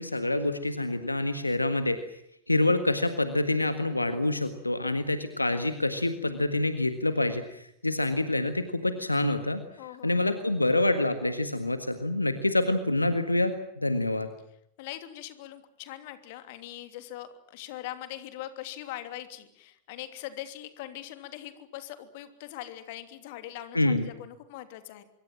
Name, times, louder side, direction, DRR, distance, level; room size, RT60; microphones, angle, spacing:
voice 1, 0.0-2.0 2.5-9.6 10.0-14.3 23.7-24.1, left 2 dB, 85° left, 9 dB, 1.7 m, -27 dB
voice 2, 9.8-10.3 14.8-25.0, left 13 dB, 50° left, 9 dB, 2.9 m, -41 dB
25.5 x 24.0 x 7.5 m, 0.74 s
figure-of-eight pair, 90°, 0 cm